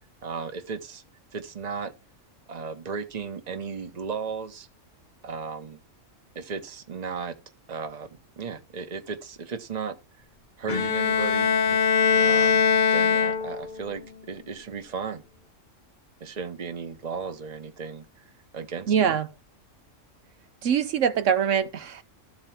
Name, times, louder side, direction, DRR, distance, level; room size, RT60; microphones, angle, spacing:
voice 1, 0.2-1.0 1.3-1.9 2.5-4.7 5.2-5.8 6.3-7.4 7.7-10.0 10.6-11.8 12.1-14.0 14.3-15.2 16.2-18.2 18.5-19.1, right 5 dB, 35° right, 1.0 m, -35 dB
Bowed string instrument, 10.7-13.9, left 6 dB, 50° left, 0.7 m, -22 dB
voice 2, 18.9-19.3 20.6-22.0, right 8 dB, 70° right, 1.0 m, -23 dB
13.0 x 4.5 x 5.9 m
omnidirectional pair, 1.3 m